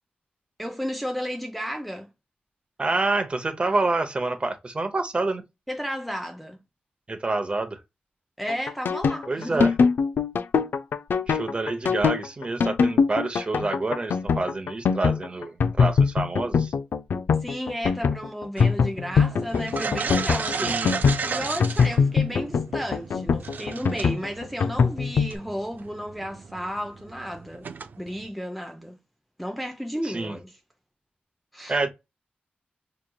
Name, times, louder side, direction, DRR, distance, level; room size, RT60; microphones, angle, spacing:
voice 1, 0.6-2.1 5.7-6.6 8.4-9.7 17.4-20.9 21.3-27.7 28.0-29.0 29.4-30.5 31.5-31.8, equal, ahead, 0.5 m, -33 dB
voice 2, 2.8-5.4 7.1-7.8 9.3-9.7 11.3-16.7 20.5-20.9 30.0-30.4 31.7-31.9, right 3 dB, 30° right, 0.8 m, -27 dB
sound 1, 8.5-25.3, left 5 dB, 80° left, 0.4 m, -22 dB
sound 2, 18.6-28.3, right 5 dB, 60° right, 0.4 m, -35 dB
5.0 x 3.0 x 2.2 m
wide cardioid pair, 120°, 3 cm